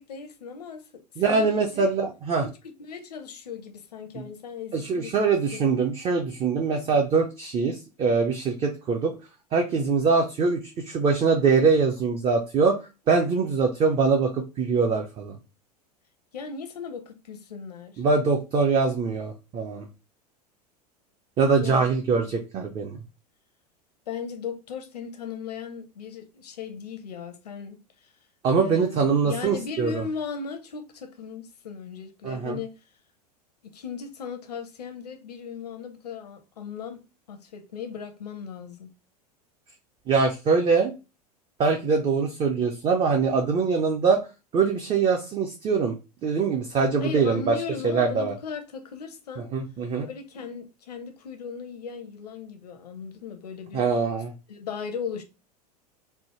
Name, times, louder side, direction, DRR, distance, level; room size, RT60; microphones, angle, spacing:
voice 1, 0.0-1.9 2.4-5.2 5.5-5.6 16.3-18.0 21.6-21.9 24.1-28.1 28.6-32.8 33.6-38.9 47.0-49.5 50.0-53.8 54.5-55.2, left 6 dB, 70° left, 0.6 m, -37 dB
voice 2, 1.2-2.5 4.7-9.1 9.5-12.8 13.1-15.4 18.0-19.9 21.4-23.0 28.4-30.0 32.2-32.6 40.1-41.0 41.6-44.2 44.5-46.0 46.2-47.6 47.8-48.3 49.5-50.1 53.7-54.3, right 5 dB, 25° right, 0.4 m, -23 dB
3.2 x 2.0 x 2.9 m
figure-of-eight pair, 85°, 21 cm